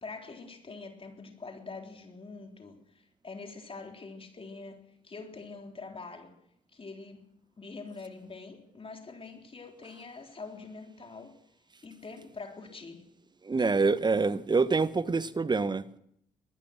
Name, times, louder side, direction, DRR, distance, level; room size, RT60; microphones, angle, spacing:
voice 1, 0.0-2.8 3.2-4.8 5.0-6.3 6.7-7.2 7.6-11.3 11.8-13.0, left 4 dB, 30° left, 3.7 m, -44 dB
voice 2, 13.4-16.0, right 4 dB, 25° right, 1.2 m, -26 dB
23.0 x 20.0 x 6.2 m
figure-of-eight pair, 40°, 18 cm